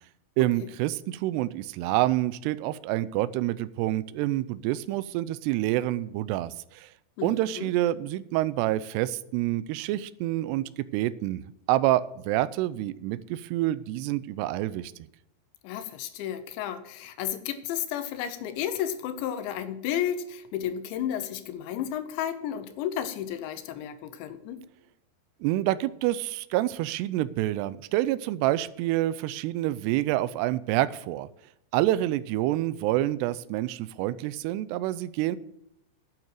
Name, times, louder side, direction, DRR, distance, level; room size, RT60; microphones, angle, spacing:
voice 1, 0.4-6.9 7.2-14.9 25.4-31.3 31.7-35.4, right 15 dB, 85° right, 15 dB, 2.4 m, -27 dB
voice 2, 7.2-7.7 15.6-24.6, left 10 dB, 80° left, 11 dB, 3.1 m, -32 dB
9.1 x 9.0 x 7.5 m, 0.79 s
omnidirectional pair, 5.4 m